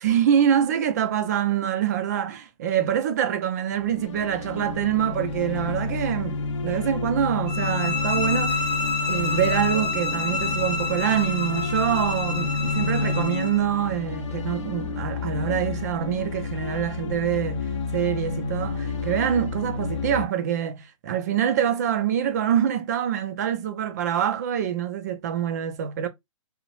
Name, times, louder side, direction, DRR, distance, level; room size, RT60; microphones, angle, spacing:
voice 1, 0.0-8.7 9.1-26.1, right 9 dB, 30° right, 0.3 m, -25 dB
sound 1, 3.7-20.2, left 4 dB, 60° left, 0.5 m, -30 dB
sound 2, 7.5-13.6, left 4 dB, 5° right, 0.7 m, -29 dB
2.7 x 2.0 x 2.9 m
hypercardioid pair, 160°, 18 cm